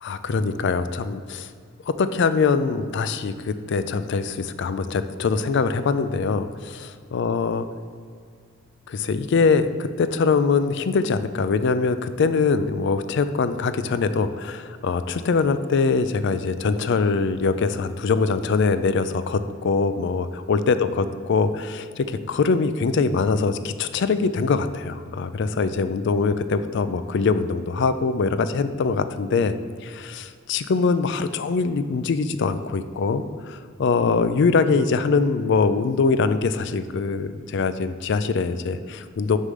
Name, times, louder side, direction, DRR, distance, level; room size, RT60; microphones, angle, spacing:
voice 1, 0.0-1.5 1.9-7.7 8.9-29.5 29.8-39.4, left 4 dB, 60° left, 12 dB, 0.4 m, -23 dB
6.5 x 3.7 x 6.3 m, 2.1 s
head